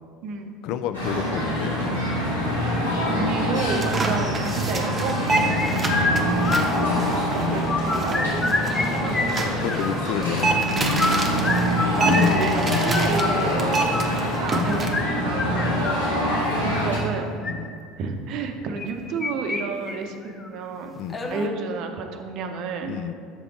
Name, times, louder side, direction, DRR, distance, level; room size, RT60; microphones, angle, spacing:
voice 1, 0.6-2.0 5.4-5.8 9.6-10.9 15.7-16.0 17.4-17.7 21.0-21.3 22.9-23.1, left 9 dB, 55° left, 10 dB, 0.3 m, -31 dB
sound 1, 0.9-17.0, equal, 85° left, 2.0 m, -25 dB
voice 2, 2.6-5.2 6.7-8.5 8.8-9.3 11.4-11.6 12.0-15.7 16.6-17.4 18.0-20.9 21.3-22.9, right 4 dB, 50° right, 5 dB, 0.7 m, -31 dB
sound 2, 3.5-14.9, right 2 dB, 25° right, 0.9 m, -28 dB
sound 3, 5.3-7.2 7.5-8.8 9.1-10.1 10.8-16.5 17.2-17.5 18.8-19.6 19.9-20.0 20.4-20.5 21.1-21.5, left 3 dB, 25° left, 0.7 m, -27 dB
7.5 x 5.1 x 4.7 m, 2.2 s
figure-of-eight pair, 65°, 0 cm